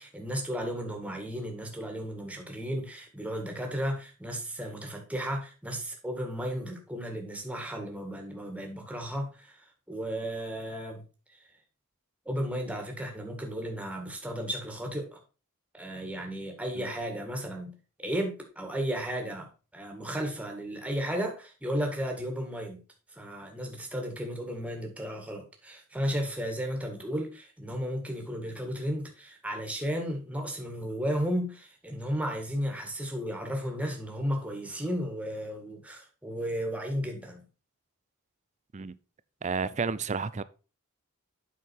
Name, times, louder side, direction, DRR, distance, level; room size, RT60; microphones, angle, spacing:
voice 1, 0.0-11.0 12.2-15.2 15.7-17.7 18.0-22.8 23.1-37.4, equal, 5° right, 1.8 m, -34 dB
voice 2, 39.4-40.4, right 5 dB, 30° right, 0.5 m, -31 dB
8.4 x 5.7 x 4.5 m
head